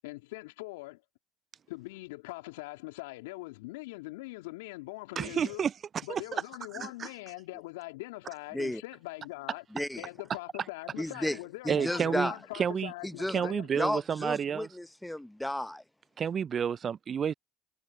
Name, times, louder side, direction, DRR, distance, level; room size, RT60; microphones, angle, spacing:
voice 1, 0.0-1.0 1.7-5.7 6.0-9.6 10.0-13.7, left 22 dB, 75° left, 2.9 m, -42 dB
voice 2, 5.2-5.7 6.1-6.2 6.8-7.1 11.7-12.9 13.3-14.7 16.2-17.3, right 7 dB, 40° right, 0.4 m, -30 dB
voice 3, 9.7-10.1 11.0-11.4 11.6-12.3 13.0-13.4 13.7-15.8, left 1 dB, 5° left, 1.0 m, -33 dB
hypercardioid pair, 65°, 0 cm